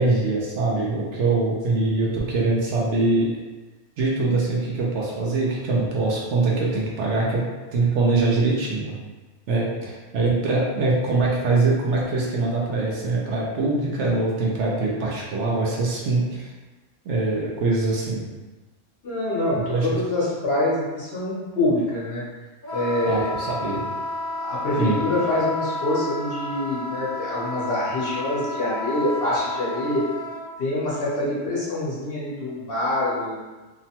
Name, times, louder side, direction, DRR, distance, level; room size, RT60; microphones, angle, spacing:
voice 1, 0.0-3.3 4.0-7.4 7.7-8.9 9.5-16.5 17.0-18.3 19.7-19.9 23.1-23.8 24.8-25.0, right 3 dB, 70° right, -3 dB, 0.9 m, -23 dB
voice 2, 19.0-22.2 22.7-23.3 24.4-30.0 30.6-33.4, left 1 dB, 55° left, -7 dB, 0.9 m, -25 dB
Wind instrument woodwind instrument, 22.6-30.5, left 1 dB, 30° left, 0.5 m, -31 dB
2.9 x 2.1 x 2.8 m, 1.2 s
omnidirectional pair, 1.3 m